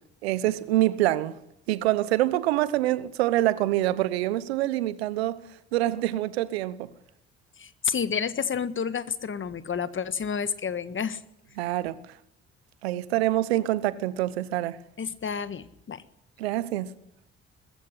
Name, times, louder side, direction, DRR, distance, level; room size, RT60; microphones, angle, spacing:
voice 1, 0.2-1.4 1.7-5.4 5.7-6.9 11.6-12.0 12.8-14.8 16.4-16.9, right 15 dB, 85° right, 1.0 m, -25 dB
voice 2, 7.6-11.2 15.0-16.0, left 6 dB, 40° left, 1.6 m, -30 dB
21.0 x 15.0 x 9.9 m
hypercardioid pair, 50°, 31 cm